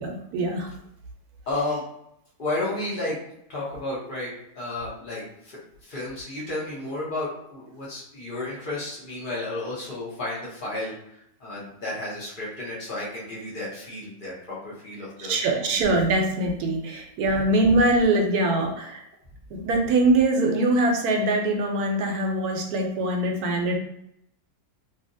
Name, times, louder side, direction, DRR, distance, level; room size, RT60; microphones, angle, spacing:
voice 1, 0.0-0.7 15.2-19.0 19.5-23.8, right 2 dB, 75° right, 2 dB, 1.0 m, -23 dB
voice 2, 1.5-1.8 2.4-3.2 3.5-15.7 17.3-17.4, left 2 dB, 40° left, -6 dB, 0.8 m, -32 dB
2.7 x 2.6 x 2.6 m, 0.77 s
omnidirectional pair, 1.7 m